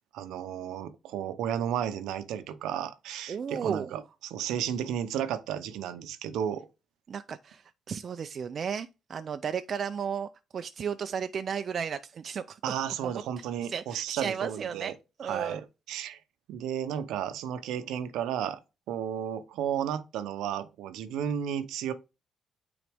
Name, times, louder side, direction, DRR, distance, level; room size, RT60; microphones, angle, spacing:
voice 1, 0.1-6.7 12.6-14.9 15.2-16.2 16.5-18.6 18.9-21.9, right 9 dB, 90° right, 0.7 m, -33 dB
voice 2, 3.3-3.9 7.1-12.6 13.0-13.2 13.6-14.9 15.2-15.6, right 7 dB, 50° right, 0.4 m, -34 dB
9.2 x 4.0 x 3.5 m
cardioid pair, 90°, 0 cm